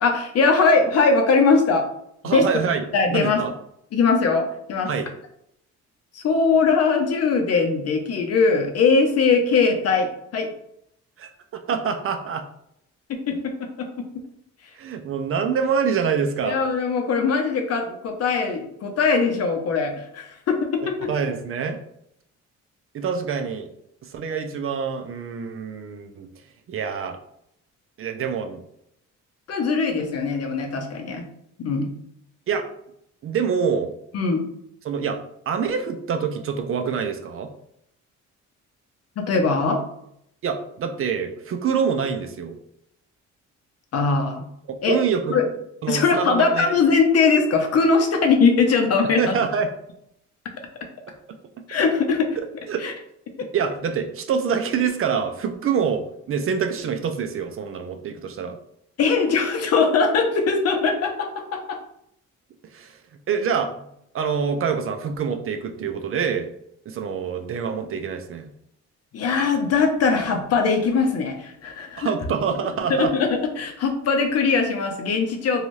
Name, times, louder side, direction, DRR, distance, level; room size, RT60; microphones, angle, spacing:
voice 1, 0.0-1.9 2.2-2.5 2.9-3.4 3.9-4.9 6.1-10.5 13.1-14.1 16.4-21.1 29.5-31.3 31.6-31.9 34.1-34.5 39.2-39.8 43.9-44.5 44.8-45.0 45.3-45.4 45.9-49.3 51.7-52.3 52.8-52.9 53.4-53.5 59.0-61.8 69.1-72.1 72.9-75.6, left 4 dB, 55° left, 4 dB, 0.6 m, -21 dB
voice 2, 2.2-3.5 4.9-5.1 11.2-12.5 14.7-16.6 21.0-21.8 22.9-23.7 24.0-26.3 26.7-27.2 28.0-28.6 32.5-32.7 33.2-33.9 34.8-35.2 35.5-37.5 40.4-42.6 44.7-45.4 45.8-46.7 49.2-49.7 52.4-52.9 53.4-58.6 62.7-63.0 63.3-63.8 64.1-66.5 66.9-68.5 72.0-73.1, right 6 dB, 45° right, 6 dB, 0.4 m, -26 dB
2.6 x 2.3 x 3.1 m, 0.75 s
cardioid pair, 90°, 30 cm